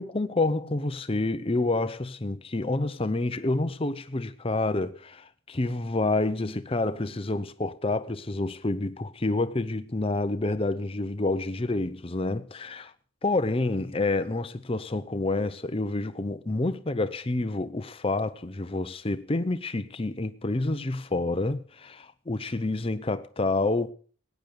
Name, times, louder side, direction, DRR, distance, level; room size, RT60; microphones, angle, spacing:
voice 1, 0.0-12.9 13.2-23.9, left 2 dB, 25° left, 0.7 m, -28 dB
16.0 x 9.4 x 6.6 m
head